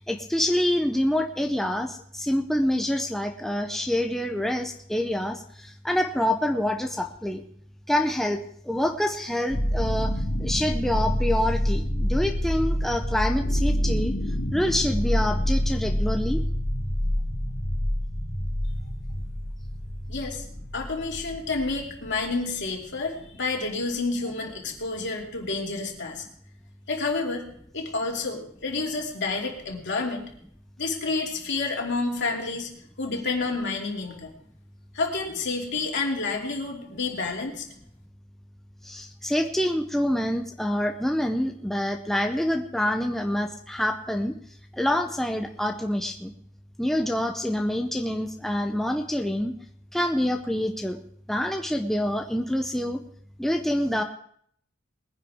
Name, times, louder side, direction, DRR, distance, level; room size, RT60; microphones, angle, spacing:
voice 1, 0.0-7.4 7.9-14.1 14.5-16.4 38.8-44.3 44.7-46.3 46.8-49.5 49.9-51.0 51.3-53.0 53.4-54.0, left 1 dB, ahead, 4 dB, 0.6 m, -26 dB
sound 1, 9.5-23.5, equal, 75° left, 2.4 m, -27 dB
voice 2, 20.1-20.4 20.7-26.2 26.9-27.5 27.7-30.2 30.8-32.7 33.0-34.3 34.9-37.7, left 3 dB, 60° left, 0 dB, 2.8 m, -29 dB
21.0 x 10.0 x 3.6 m, 0.64 s
head